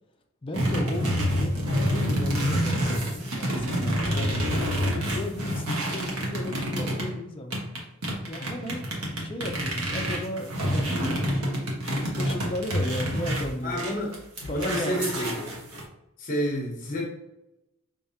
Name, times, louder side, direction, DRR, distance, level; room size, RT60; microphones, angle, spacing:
voice 1, 0.4-4.4 5.0-7.6 8.3-13.8 14.5-15.5, left 1 dB, 25° left, 2 dB, 0.4 m, -35 dB
sound 1, 0.5-7.1 7.5-15.8, equal, 85° right, 1.3 m, -27 dB
voice 2, 13.6-14.2 14.5-15.3 16.2-17.1, equal, 40° left, -2 dB, 0.9 m, -29 dB
5.6 x 3.4 x 2.8 m, 0.91 s
head